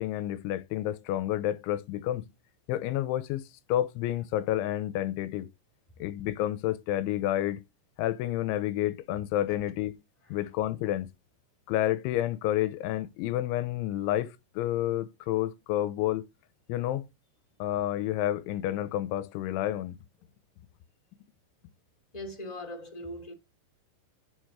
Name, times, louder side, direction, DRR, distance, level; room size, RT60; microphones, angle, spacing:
voice 1, 0.0-2.3 2.7-3.4 3.7-5.5 6.0-7.6 8.0-9.9 10.3-11.1 11.7-16.2 16.7-17.1 17.6-20.0, left 13 dB, 85° left, 3.1 m, -30 dB
voice 2, 22.1-23.3, left 1 dB, 20° left, 1.1 m, -40 dB
7.6 x 6.5 x 6.3 m
omnidirectional pair, 5.5 m